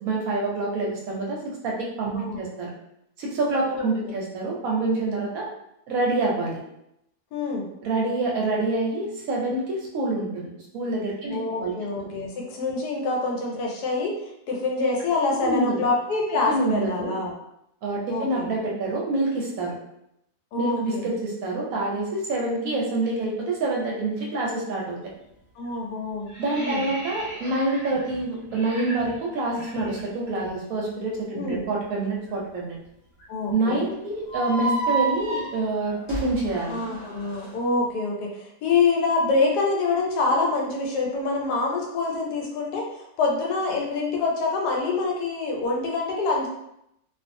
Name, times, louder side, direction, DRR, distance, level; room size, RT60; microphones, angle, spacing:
voice 1, 0.0-2.7 3.2-5.5 5.9-6.6 7.8-11.7 15.4-15.8 16.5-17.2 17.8-19.8 20.5-25.0 26.4-32.8 33.5-36.8, right 2 dB, 70° right, -2 dB, 1.0 m, -27 dB
voice 2, 2.1-2.5 3.7-4.2 7.3-7.7 11.3-14.2 14.5-17.3 18.1-18.5 20.5-21.1 25.6-26.9 31.3-31.7 33.3-33.9 36.7-46.5, left 3 dB, 85° left, -1 dB, 1.2 m, -26 dB
sound 1, 25.0-25.3 25.6-30.6 30.8-31.0 31.3-35.4, equal, 60° left, 0.9 m, -41 dB
sound 2, 34.3-37.5, right 3 dB, 30° left, 1.1 m, -29 dB
2.5 x 2.4 x 2.5 m, 0.79 s
omnidirectional pair, 1.7 m